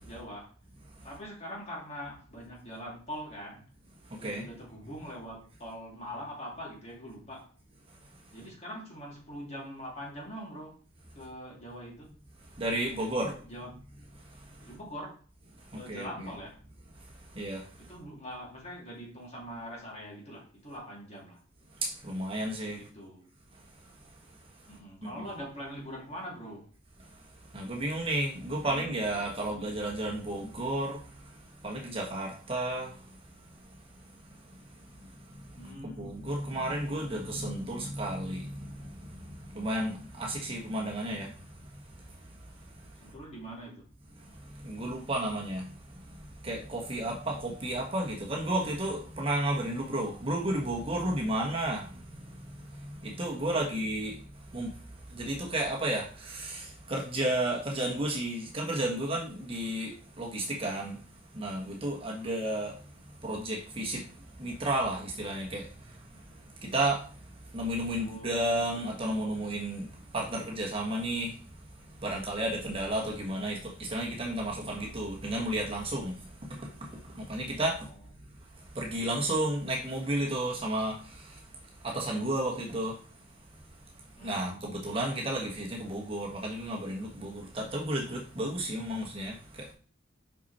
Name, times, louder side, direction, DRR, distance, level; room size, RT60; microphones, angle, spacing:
voice 1, 0.0-0.5 1.0-3.7 4.2-7.5 8.3-10.8 11.1-12.1 13.0-13.8 14.6-15.2 15.7-16.6 17.8-21.4 22.7-23.3 24.6-26.7 28.5-29.9 35.6-36.2 43.0-43.8 53.4-54.0 62.1-62.4 67.8-69.1 77.8-78.3 84.1-84.7, equal, 30° left, 2.8 m, -44 dB
voice 2, 4.1-4.5 12.6-13.3 15.7-16.1 17.3-17.6 21.8-22.8 25.2-25.3 27.5-31.0 31.6-32.9 35.6-41.3 44.6-45.7 46.1-52.2 52.6-54.2 54.5-54.7 55.1-61.0 61.3-62.8 63.2-64.1 64.4-65.7 66.6-67.1 67.5-69.9 70.1-71.3 72.0-76.2 76.5-77.9 78.7-81.4 81.8-83.0 84.2-89.7, right 1 dB, 25° right, 1.3 m, -32 dB
5.9 x 5.7 x 4.2 m
head